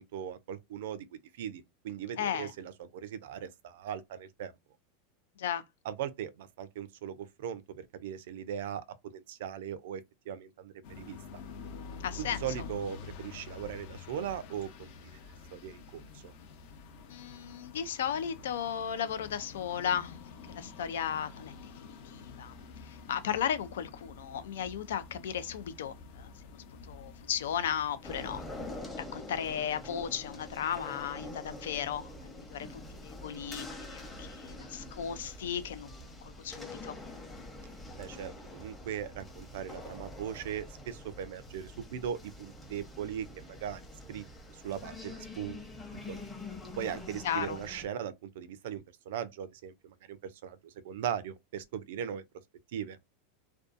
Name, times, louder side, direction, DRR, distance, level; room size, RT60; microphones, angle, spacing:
voice 1, 0.0-4.5 5.8-8.8 9.1-11.4 12.2-16.3 38.0-43.8 44.1-44.2 44.5-45.7 45.9-46.3 46.8-52.2 52.7-53.0, right 9 dB, 75° right, 0.4 m, -39 dB
voice 2, 2.2-2.5 5.4-5.6 12.0-12.4 17.1-20.2 20.5-21.5 21.8-22.5 22.8-26.6 26.9-28.4 29.0-37.0 47.2-47.6, left 9 dB, 90° left, 0.4 m, -35 dB
sound 1, 10.8-28.8, left 5 dB, 55° left, 0.7 m, -48 dB
sound 2, 28.0-47.9, left 2 dB, 10° left, 0.7 m, -45 dB
2.6 x 2.2 x 2.5 m
supercardioid pair, 140°, 0 cm